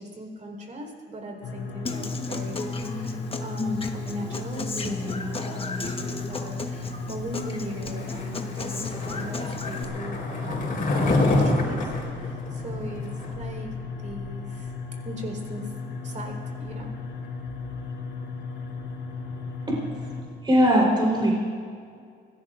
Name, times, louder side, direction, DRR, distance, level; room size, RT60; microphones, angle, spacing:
voice 1, 0.0-11.9 12.2-13.1 13.3-13.7 14.0-14.7 15.0-15.7 16.0-16.9, right 1 dB, 40° right, 1 dB, 4.1 m, -39 dB
sound 1, 1.4-20.2, left 4 dB, 80° left, 3.8 m, -35 dB
Human voice / Acoustic guitar, 1.8-9.8, left 3 dB, 30° left, 1.2 m, -34 dB
Skateboard, 7.9-13.3, left 2 dB, 45° left, 4.3 m, -27 dB
voice 2, 20.4-21.3, equal, 25° right, -3 dB, 3.9 m, -20 dB
25.0 x 17.5 x 2.5 m, 2.2 s
cardioid pair, 90°, 20 cm